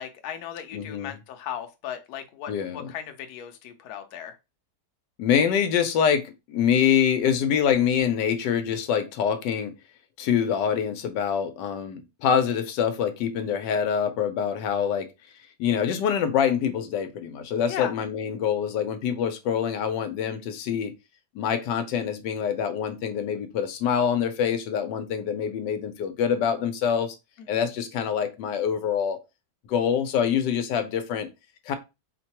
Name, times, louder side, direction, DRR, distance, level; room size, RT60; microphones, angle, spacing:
voice 1, 0.0-4.3 17.7-17.9 27.4-27.7, left 9 dB, 70° left, 1.1 m, -36 dB
voice 2, 0.7-1.2 2.5-2.9 5.2-9.8 10.2-15.1 15.6-20.9 21.3-27.2 27.5-29.2 29.7-31.3 31.7-31.8, left 8 dB, 90° left, 1.3 m, -25 dB
4.6 x 2.2 x 2.9 m
omnidirectional pair, 1.8 m